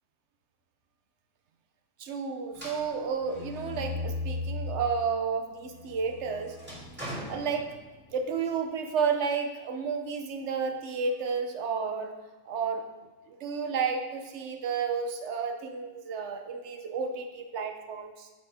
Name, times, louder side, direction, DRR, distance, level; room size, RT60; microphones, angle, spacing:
voice 1, 2.0-6.6 7.3-7.7 8.1-12.1 12.5-18.3, right 5 dB, 55° right, 5 dB, 1.1 m, -31 dB
sound 1, 2.5-4.9 5.4-8.2, left 2 dB, 5° right, 2.4 m, -38 dB
9.5 x 6.9 x 3.5 m, 1.3 s
omnidirectional pair, 1.5 m